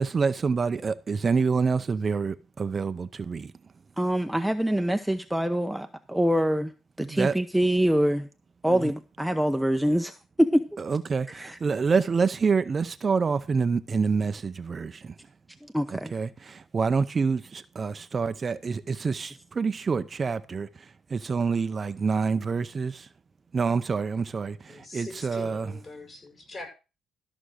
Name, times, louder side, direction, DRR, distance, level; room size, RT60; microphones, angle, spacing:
voice 1, 0.0-3.5 7.0-7.4 8.7-8.9 10.8-15.2 15.9-23.1 23.5-25.7, right 5 dB, 35° right, 0.6 m, -27 dB
voice 2, 4.0-6.7 7.0-8.3 8.6-10.6 11.3-11.6 15.6-16.1, equal, 5° right, 0.8 m, -25 dB
voice 3, 24.7-26.7, left 3 dB, 40° left, 7.3 m, -42 dB
13.5 x 6.1 x 6.4 m
cardioid pair, 90°, 0 cm